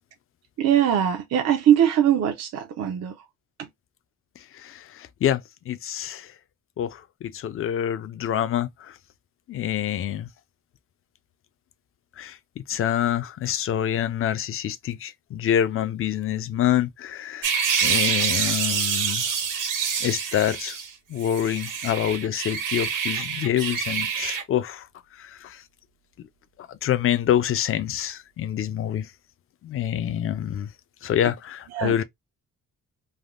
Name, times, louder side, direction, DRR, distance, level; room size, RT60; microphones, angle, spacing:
voice 1, 0.6-3.2 3.6-3.7 31.2-31.3 31.7-32.0, right 10 dB, 55° right, 0.6 m, -22 dB
voice 2, 4.5-5.4 5.7-6.3 6.8-8.9 9.5-10.3 12.2-17.5 17.8-19.2 20.0-20.8 21.1-24.9 25.2-25.6 26.7-29.1 29.6-30.7 31.0-32.0, left 10 dB, 45° left, 0.4 m, -26 dB
sound 1, 17.4-20.9 21.2-24.4, right 7 dB, 75° right, 1.3 m, -26 dB
3.4 x 2.1 x 2.4 m
cardioid pair, 150°, 33 cm